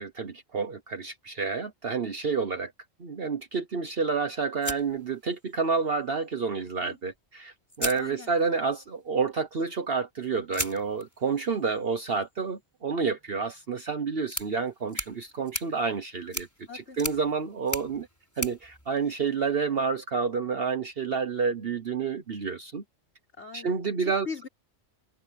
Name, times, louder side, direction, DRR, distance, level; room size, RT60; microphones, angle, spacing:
voice 1, 0.0-2.7 3.0-16.5 16.7-18.1 18.4-22.8 23.5-24.3, right 5 dB, 55° right, 1.3 m, -29 dB
sound 1, 4.6-5.8 7.1-7.2 7.7-8.7 10.5-19.7, equal, 15° left, 5.4 m, -39 dB
voice 2, 7.9-8.3 16.7-17.0 23.4-24.5, left 5 dB, 65° left, 5.1 m, -41 dB
omnidirectional pair, 1.3 m